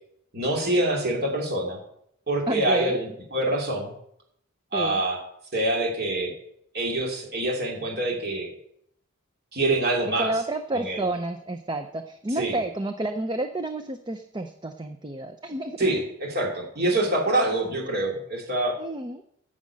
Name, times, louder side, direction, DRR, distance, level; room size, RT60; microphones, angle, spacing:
voice 1, 0.3-1.8 2.3-3.9 4.7-5.2 5.5-6.3 6.7-8.5 9.5-10.3 10.7-11.0 12.4-12.6 15.8-18.8, right 1 dB, 45° right, -1 dB, 2.5 m, -25 dB
voice 2, 2.5-3.0 4.7-5.0 10.0-15.8 18.8-19.2, right 2 dB, 20° right, 7 dB, 0.5 m, -30 dB
9.5 x 6.3 x 8.6 m, 0.74 s
head